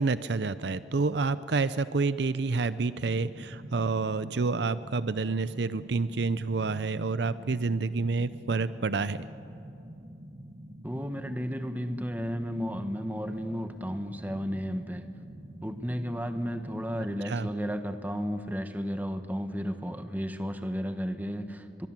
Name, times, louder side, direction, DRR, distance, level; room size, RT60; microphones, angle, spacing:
voice 1, 0.0-9.3 17.2-17.5, right 4 dB, 65° right, 15 dB, 0.6 m, -28 dB
sound 1, 3.0-17.0, right 1 dB, 35° right, 1.4 m, -47 dB
voice 2, 10.8-15.0 15.6-21.9, equal, 10° right, 8 dB, 1.1 m, -33 dB
23.0 x 22.5 x 7.5 m, 2.7 s
head